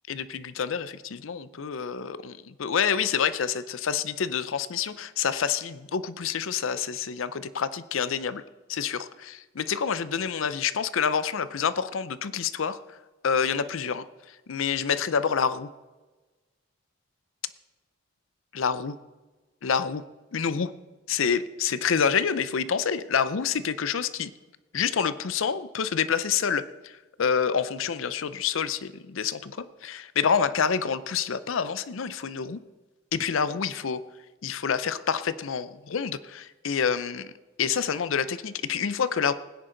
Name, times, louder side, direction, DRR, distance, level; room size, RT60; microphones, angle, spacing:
voice 1, 0.1-8.4 8.7-13.0 13.2-15.7 18.5-19.0 19.6-20.0 20.3-20.7 21.1-24.3 24.7-32.6 33.1-34.0 34.4-37.3 37.6-39.3, left 6 dB, 75° left, 15 dB, 0.5 m, -27 dB
19.0 x 10.0 x 3.9 m, 1.2 s
head